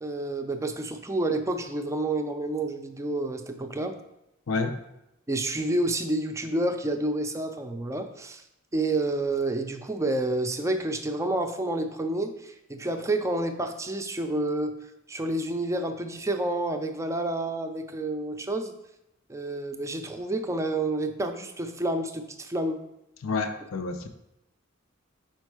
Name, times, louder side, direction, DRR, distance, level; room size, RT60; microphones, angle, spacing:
voice 1, 0.0-4.0 5.3-8.4 8.7-14.7 15.1-18.7 19.3-22.8, right 2 dB, 15° right, 6 dB, 0.4 m, -29 dB
voice 2, 4.5-4.8 23.2-24.1, left 4 dB, 75° left, 7 dB, 0.6 m, -29 dB
5.3 x 4.5 x 4.7 m, 0.86 s
head